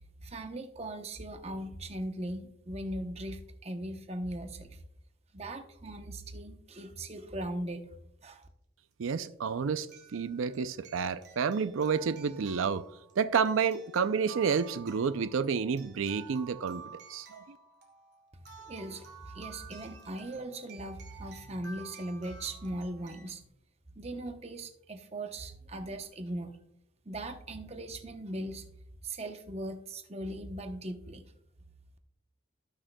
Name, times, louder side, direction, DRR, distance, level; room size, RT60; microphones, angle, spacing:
voice 1, 0.2-4.8 5.3-7.8 8.2-8.5 18.3-23.5 24.0-26.5 27.0-28.7 29.0-31.2, right 1 dB, 30° right, 0.8 m, -39 dB
sound 1, 8.4-8.5 9.9-23.3, right 6 dB, 55° right, 2.6 m, -52 dB
voice 2, 9.0-12.9 13.2-17.6, right 6 dB, 90° right, 0.4 m, -30 dB
18.0 x 6.3 x 2.2 m
head